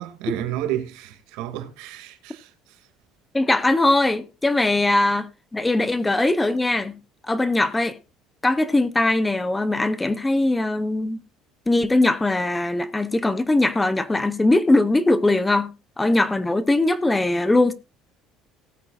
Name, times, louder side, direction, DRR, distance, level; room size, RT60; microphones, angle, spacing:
voice 1, 0.0-2.5, right 12 dB, 90° right, 2.2 m, -31 dB
voice 2, 3.3-7.0 7.2-8.0 8.4-11.2 11.7-17.7, left 2 dB, 10° left, 0.6 m, -21 dB
18.5 x 8.8 x 2.4 m
cardioid pair, 175°, 0 cm